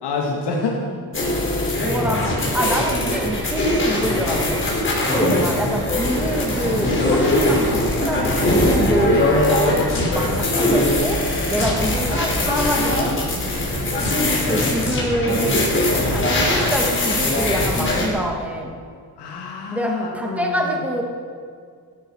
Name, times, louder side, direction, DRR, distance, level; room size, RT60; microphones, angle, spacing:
voice 1, 0.0-0.8 1.6-2.2 5.2-5.5 9.6-9.9 11.7-11.9 19.2-20.8, left 4 dB, 85° left, -1 dB, 2.4 m, -28 dB
sound 1, 1.1-18.1, left 1 dB, 30° left, 5.2 m, -20 dB
voice 2, 1.8-2.3 2.5-4.6 5.1-9.3 10.1-11.2 11.5-13.1 14.5-15.7 16.1-18.7 19.7-21.0, right 1 dB, 5° right, 0 dB, 2.1 m, -26 dB
16.0 x 13.5 x 6.4 m, 2.1 s
cardioid pair, 130°, 39 cm